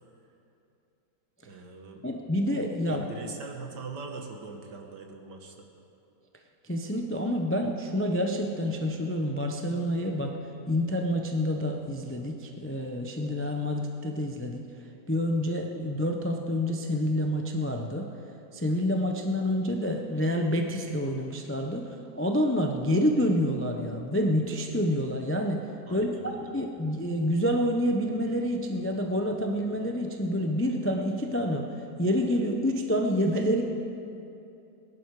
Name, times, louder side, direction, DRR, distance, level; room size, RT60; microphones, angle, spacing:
voice 1, 1.5-2.0 2.9-5.7 25.9-26.5, right 4 dB, 75° right, 3 dB, 2.0 m, -41 dB
voice 2, 2.0-3.1 6.6-10.3 10.7-14.6 15.1-18.1 18.5-21.8 22.1-25.6 25.9-31.7 32.0-33.6, equal, 15° left, 3 dB, 0.4 m, -28 dB
20.5 x 11.0 x 4.9 m, 2.7 s
omnidirectional pair, 1.8 m